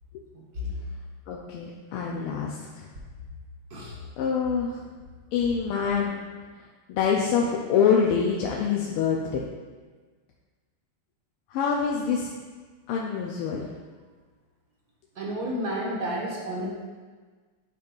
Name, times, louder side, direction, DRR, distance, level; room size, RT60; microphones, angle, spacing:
voice 1, 0.3-0.8 3.7-4.0 15.2-16.7, equal, 50° right, -4 dB, 1.6 m, -31 dB
voice 2, 1.3-2.9 4.2-4.8 5.3-6.2 6.9-9.5 11.5-12.3 12.9-13.7, left 6 dB, 90° left, -2 dB, 1.5 m, -25 dB
8.9 x 5.3 x 2.4 m, 1.4 s
omnidirectional pair, 2.4 m